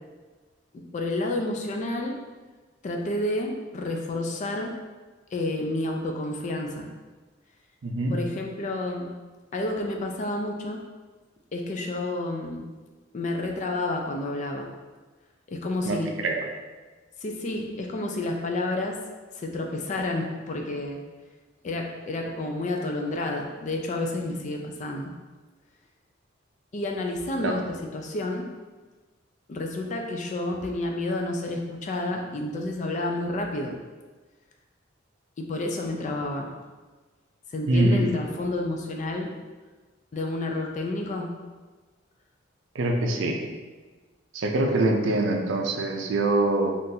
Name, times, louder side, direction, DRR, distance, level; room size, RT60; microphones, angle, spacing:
voice 1, 0.7-2.2 2.8-4.7 5.3-6.9 8.1-9.1 9.5-10.8 11.5-12.7 13.1-14.7 15.5-16.2 17.2-19.0 19.3-21.0 21.6-25.1 26.7-28.5 29.5-33.8 35.4-36.5 37.5-39.3 40.1-41.4, left 2 dB, 40° left, 2 dB, 0.4 m, -30 dB
voice 2, 7.8-8.1 15.8-16.4 27.4-27.7 37.7-38.2 42.7-43.4 44.3-46.7, right 2 dB, 70° right, 2 dB, 0.5 m, -24 dB
3.8 x 2.5 x 2.7 m, 1.3 s
head